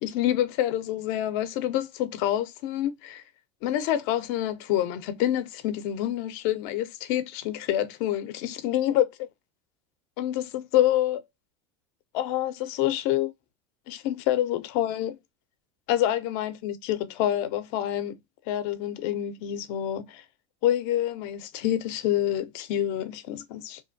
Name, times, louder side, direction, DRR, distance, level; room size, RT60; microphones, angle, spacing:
voice 1, 0.0-3.2 3.6-9.3 10.2-11.2 12.1-13.3 13.9-15.1 15.9-18.2 18.5-20.2 20.6-23.8, left 12 dB, 60° left, 0.5 m, -27 dB
2.7 x 2.1 x 2.6 m
supercardioid pair, 110°, 15 cm